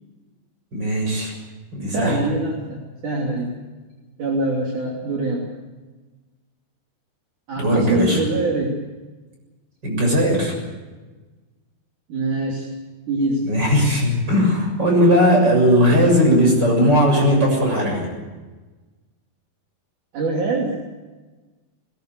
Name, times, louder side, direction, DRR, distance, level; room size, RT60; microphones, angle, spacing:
voice 1, 0.7-1.3 1.7-2.2 7.6-8.2 9.8-10.5 13.4-18.1, equal, 25° right, 1 dB, 7.5 m, -18 dB
voice 2, 1.9-3.6 4.2-5.5 7.5-8.8 12.1-12.7 13.1-13.4 20.1-20.8, right 2 dB, 60° right, -2 dB, 4.2 m, -24 dB
21.0 x 19.5 x 8.2 m, 1.3 s
omnidirectional pair, 4.2 m